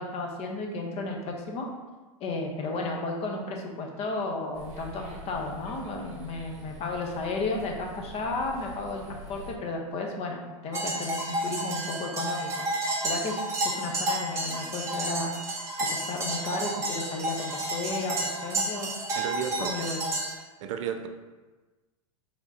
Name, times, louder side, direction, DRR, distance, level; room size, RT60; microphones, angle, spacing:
voice 1, 0.0-1.7 2.2-12.5 13.0-15.4 15.8-18.9 19.6-20.0, left 3 dB, 35° left, 1 dB, 0.9 m, -33 dB
sound 1, 4.5-9.5, equal, 40° right, 1.0 m, -45 dB
sound 2, 10.7-20.3, right 1 dB, 15° right, 1.4 m, -31 dB
voice 2, 19.1-19.7 20.6-21.1, right 8 dB, 65° right, 6 dB, 0.5 m, -32 dB
4.7 x 3.6 x 2.8 m, 1.2 s
hypercardioid pair, 105°, 17 cm